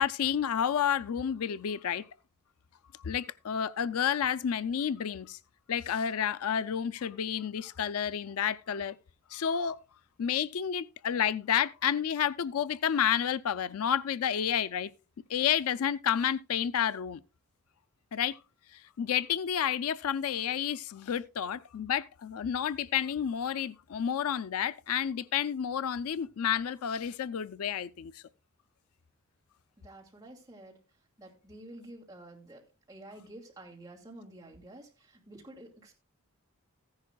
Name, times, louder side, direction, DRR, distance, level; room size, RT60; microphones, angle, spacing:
voice 1, 0.0-2.0 3.0-5.4 5.7-9.0 9.3-9.8 10.2-14.9 15.3-17.2 18.1-18.4 18.7-28.2, left 8 dB, 85° left, 0.4 m, -30 dB
voice 2, 29.8-30.8 31.2-32.6 32.9-35.9, right 1 dB, 15° right, 2.5 m, -50 dB
14.5 x 10.5 x 2.3 m
head